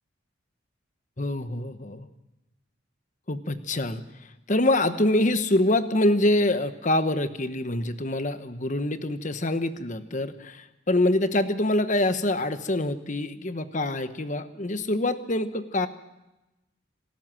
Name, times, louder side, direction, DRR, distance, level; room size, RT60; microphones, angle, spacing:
voice 1, 1.2-2.1 3.3-4.0 4.5-15.9, left 1 dB, 40° left, 10 dB, 1.1 m, -25 dB
27.5 x 13.0 x 7.6 m, 0.99 s
head